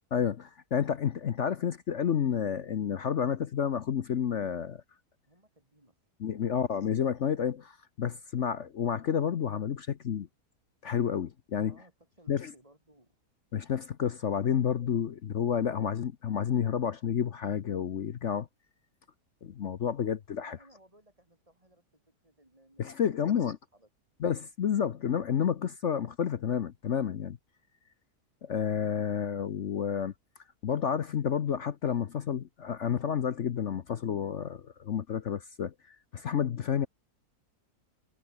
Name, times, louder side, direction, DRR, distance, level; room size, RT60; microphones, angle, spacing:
voice 1, 0.1-4.8 6.2-10.3 10.8-11.7 12.3-12.5 13.5-18.5 19.4-20.6 22.8-23.6 24.2-27.4 28.4-30.1 30.6-36.9, left 8 dB, 55° left, 1.0 m, -30 dB
voice 2, 5.3-6.0 6.3-6.8 11.7-13.1 20.4-23.9, right 1 dB, 20° right, 5.3 m, -61 dB
omnidirectional pair, 1.8 m